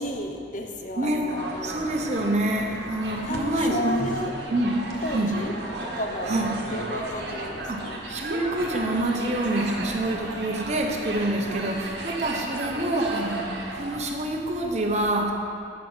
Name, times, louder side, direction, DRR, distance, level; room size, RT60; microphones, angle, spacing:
voice 1, 0.0-1.9 3.3-4.3 5.0-5.5 5.8-6.4 6.7-8.0 11.6-11.8 12.5-12.6, left 1 dB, 40° left, 3 dB, 0.7 m, -33 dB
voice 2, 1.0-1.3 1.6-4.1 4.5-5.4 6.3-6.6 7.7-15.3, right 1 dB, 35° right, 2 dB, 0.8 m, -27 dB
sound 1, 1.3-14.1, right 2 dB, 60° right, 1.2 m, -35 dB
9.1 x 5.2 x 6.1 m, 2.5 s
head